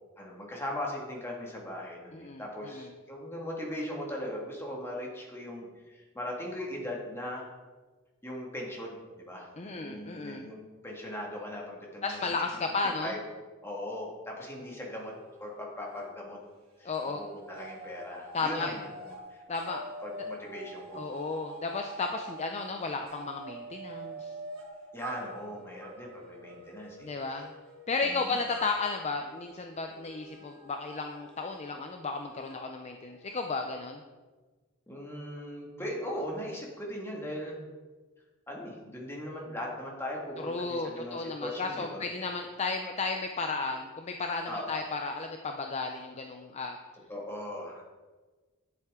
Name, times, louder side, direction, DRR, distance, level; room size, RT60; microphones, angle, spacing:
voice 1, 0.2-7.5 8.2-12.2 13.0-13.2 13.6-15.1 15.4-16.4 16.8-19.4 20.0-21.0 24.9-27.1 28.0-28.4 34.9-37.7 38.5-42.1 44.4-44.8 47.1-47.8, left 1 dB, 10° left, -2 dB, 1.9 m, -39 dB
voice 2, 2.1-2.9 9.6-10.5 12.0-13.1 16.8-17.2 18.3-18.7 19.5-19.8 21.0-24.3 27.0-27.5 27.9-34.0 40.4-46.8, left 3 dB, 30° left, 4 dB, 0.5 m, -34 dB
sound 1, 14.5-16.1 16.4-33.5, right 1 dB, 80° right, 3.3 m, -47 dB
11.0 x 7.3 x 3.7 m, 1.3 s
head